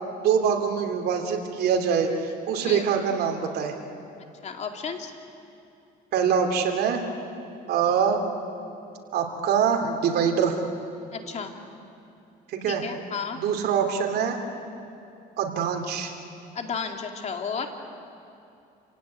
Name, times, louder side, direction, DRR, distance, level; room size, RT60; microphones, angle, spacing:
voice 1, 0.2-3.7 6.1-7.0 7.7-8.2 9.1-10.6 12.5-12.8 13.3-14.4 15.4-16.1, right 7 dB, 70° right, 3 dB, 3.0 m, -24 dB
voice 2, 4.4-5.1 11.1-11.5 12.7-13.4 16.5-17.7, left 6 dB, 40° left, 4 dB, 2.7 m, -33 dB
28.5 x 17.0 x 9.6 m, 2.7 s
cardioid pair, 110°, 17 cm